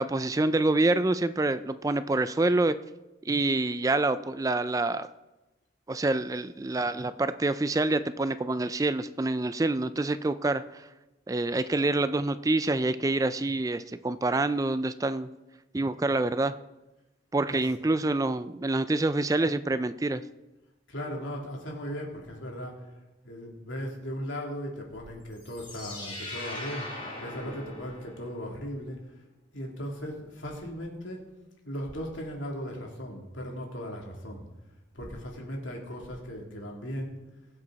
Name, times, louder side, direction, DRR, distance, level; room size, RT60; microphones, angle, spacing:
voice 1, 0.0-2.8 3.3-5.1 5.9-10.8 11.3-15.3 15.7-16.5 17.3-20.2, right 2 dB, 20° right, 13 dB, 0.3 m, -26 dB
voice 2, 20.9-22.8 23.2-26.9 27.2-29.0 29.5-31.2 31.6-34.4 34.9-37.1, equal, 85° left, 0 dB, 3.0 m, -37 dB
sound 1, 25.3-28.4, left 2 dB, 25° left, 4.7 m, -40 dB
21.5 x 7.9 x 4.1 m, 1.0 s
head